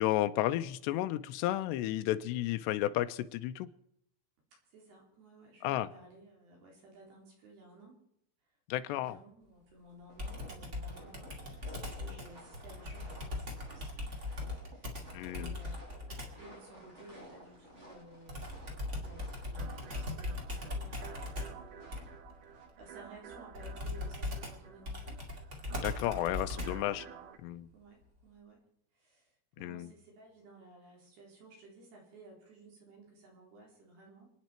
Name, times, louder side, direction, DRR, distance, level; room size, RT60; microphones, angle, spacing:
voice 1, 0.0-3.7 5.6-5.9 8.7-9.2 15.1-15.5 25.8-27.1 27.4-27.7 29.6-29.9, left 14 dB, 80° left, 10 dB, 2.7 m, -32 dB
voice 2, 4.7-8.0 8.9-14.2 14.6-15.0 15.3-22.1 22.4-25.2 26.5-27.3 27.7-28.6 28.9-34.3, right 2 dB, 60° right, -1 dB, 5.7 m, -56 dB
sound 1, 10.1-22.7, equal, 15° right, 4.4 m, -55 dB
Computer keyboard, 10.2-16.4 18.3-26.9, left 2 dB, 30° right, 1.2 m, -40 dB
sound 2, 19.6-27.4, right 9 dB, 80° right, 1.9 m, -52 dB
28.0 x 9.5 x 4.5 m, 0.72 s
omnidirectional pair, 5.3 m